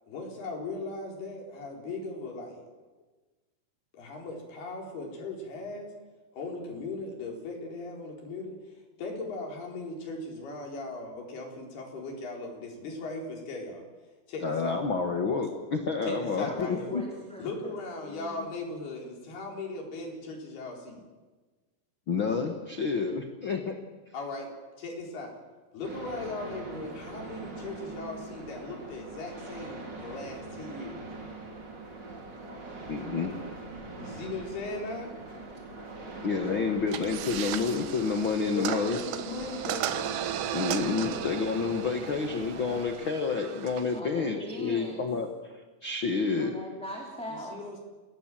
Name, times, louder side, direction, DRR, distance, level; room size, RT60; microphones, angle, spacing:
voice 1, 0.1-2.7 3.9-5.9 6.3-8.6 9.0-13.9 14.3-14.8 16.0-17.0 17.4-21.0 24.1-25.4 25.7-31.1 34.0-35.1 38.5-40.2 43.0-43.1 47.3-47.8, left 3 dB, 70° left, 0 dB, 6.1 m, -38 dB
voice 2, 14.4-17.0 22.1-23.8 32.9-33.3 36.2-39.0 40.5-45.3 45.8-46.5, left 4 dB, 85° left, 5 dB, 1.1 m, -29 dB
voice 3, 16.5-17.7 18.0-18.5 36.0-37.2 41.0-41.2 43.9-45.1 46.4-47.6, equal, ahead, -1 dB, 2.7 m, -42 dB
sound 1, 25.8-42.9, right 3 dB, 30° right, 3.4 m, -42 dB
sound 2, 36.9-44.0, right 11 dB, 85° right, 3.3 m, -36 dB
28.0 x 18.5 x 7.7 m, 1.3 s
omnidirectional pair, 4.8 m